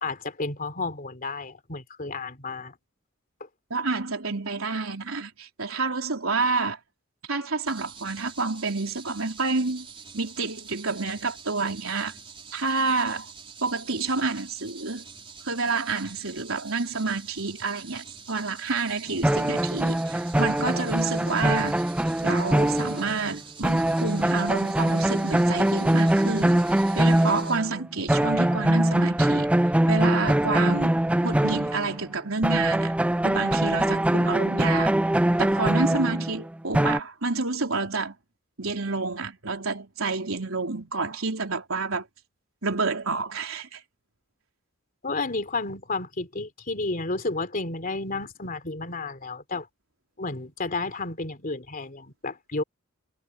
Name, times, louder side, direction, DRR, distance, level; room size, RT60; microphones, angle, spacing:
voice 1, 0.0-2.7 3.4-3.5 36.0-36.2 45.0-49.7 50.2-52.6, left 3 dB, 45° left, 3.3 m, -32 dB
voice 2, 3.7-6.8 7.3-9.9 10.1-12.2 12.5-13.3 13.6-15.0 15.4-21.8 22.2-29.5 29.9-30.9 31.2-32.9 33.2-34.9 35.4-38.2 38.6-42.1 42.6-43.8, right 3 dB, 80° right, 3.9 m, -29 dB
sound 1, 7.6-27.6, right 6 dB, 25° right, 3.8 m, -46 dB
sound 2, 19.2-23.4 23.6-27.8 28.1-32.2 32.4-37.0, right 1 dB, 5° right, 0.3 m, -23 dB
head